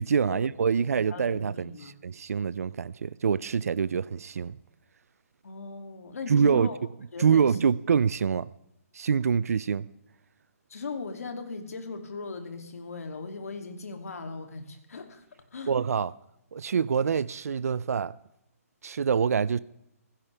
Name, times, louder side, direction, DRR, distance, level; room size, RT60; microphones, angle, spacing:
voice 1, 0.0-4.6 6.3-6.7 7.2-8.5 8.9-9.9 15.7-16.1 16.5-18.2 18.8-19.6, right 6 dB, 70° right, 0.4 m, -25 dB
voice 2, 1.1-1.9 5.4-6.8 7.1-7.6 10.7-15.3 15.5-15.7, left 4 dB, 70° left, 2.6 m, -38 dB
16.0 x 15.5 x 3.4 m
hypercardioid pair, 180°, 8 cm